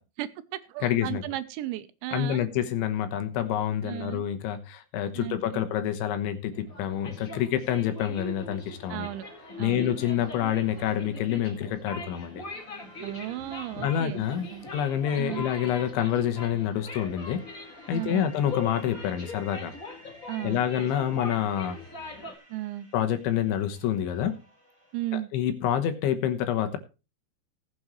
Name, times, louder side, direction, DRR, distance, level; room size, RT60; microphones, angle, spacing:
voice 1, 0.2-2.5 3.8-4.2 5.1-5.6 8.9-9.3 9.6-9.9 13.0-14.7 15.2-15.5 17.9-18.3 20.3-20.6 22.5-22.9 24.9-25.3, right 15 dB, 80° right, 13 dB, 2.9 m, -35 dB
voice 2, 0.8-1.2 2.1-9.1 9.6-12.4 13.8-14.5 14.7-17.4 17.9-19.7 20.4-21.8 22.9-24.4 25.3-26.8, left 10 dB, 75° left, 8 dB, 3.4 m, -27 dB
sound 1, 6.5-22.3, left 2 dB, 45° left, 1.0 m, -41 dB
sound 2, 7.8-25.2, right 1 dB, 15° right, 8.1 m, -56 dB
19.5 x 8.0 x 3.1 m, 0.30 s
omnidirectional pair, 5.5 m